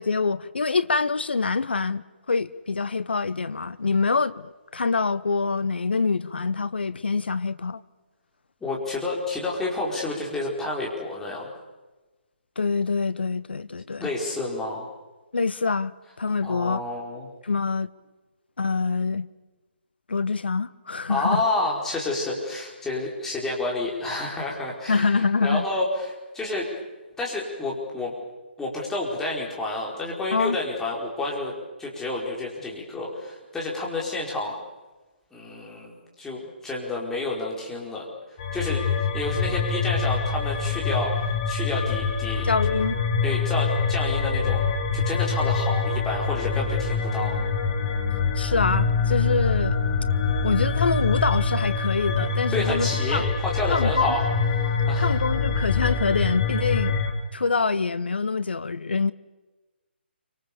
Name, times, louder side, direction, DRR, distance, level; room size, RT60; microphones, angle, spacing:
voice 1, 0.0-7.8 12.6-14.1 15.3-16.8 17.4-17.9 18.6-19.3 20.1-21.4 24.9-25.7 30.3-30.6 42.5-43.0 48.3-49.8 50.4-53.2 53.7-54.1 55.0-57.0 57.3-59.1, left 4 dB, 65° left, 1.1 m, -25 dB
voice 2, 8.6-11.5 14.0-14.9 16.4-17.3 21.1-26.7 27.2-28.1 28.6-31.5 31.8-34.5 35.3-38.1 38.5-42.5 43.2-44.6 44.9-47.4 52.5-54.2 54.6-55.1, left 2 dB, 5° left, 5.0 m, -29 dB
sound 1, 38.4-57.1, left 5 dB, 30° left, 3.1 m, -25 dB
28.5 x 25.0 x 7.1 m
figure-of-eight pair, 140°, 6 cm